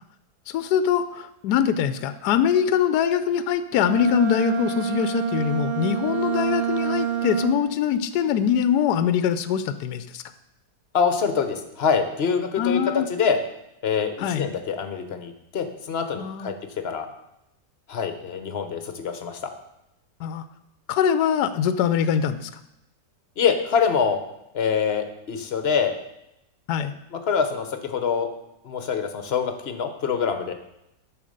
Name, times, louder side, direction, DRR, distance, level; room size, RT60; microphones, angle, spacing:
voice 1, 0.5-10.2 12.6-13.1 14.2-14.5 16.2-16.5 20.2-20.4 20.9-22.5 26.7-26.9, left 8 dB, 75° left, 11 dB, 1.1 m, -23 dB
Bowed string instrument, 3.7-7.8, right 10 dB, 65° right, 0.6 m, -27 dB
voice 2, 10.9-13.4 13.8-16.5 16.8-17.1 17.9-19.4 23.4-24.2 24.5-25.9 27.1-28.3 28.6-30.5, left 6 dB, 45° left, 8 dB, 1.0 m, -25 dB
9.1 x 6.5 x 6.5 m, 0.85 s
omnidirectional pair, 1.8 m